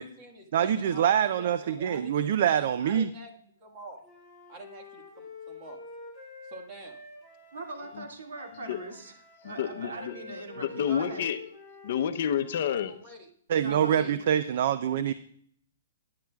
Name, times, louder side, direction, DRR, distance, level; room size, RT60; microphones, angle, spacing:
voice 1, 0.0-3.3 3.6-4.0 4.5-5.8 6.4-7.0 7.8-7.9 12.9-13.3 13.7-14.1, right 2 dB, 25° right, 1.6 m, -46 dB
voice 2, 0.5-3.1 13.5-15.1, right 9 dB, 50° right, 0.4 m, -25 dB
Wind instrument woodwind instrument, 4.0-12.6, left 3 dB, 5° right, 2.1 m, -47 dB
voice 3, 7.5-9.1 9.4-11.3 13.6-14.3, right 2 dB, 85° right, 2.4 m, -41 dB
voice 4, 9.4-10.1 10.6-11.4 11.8-12.9, left 9 dB, 50° left, 0.7 m, -29 dB
16.0 x 10.5 x 2.3 m
hypercardioid pair, 170°, 0 cm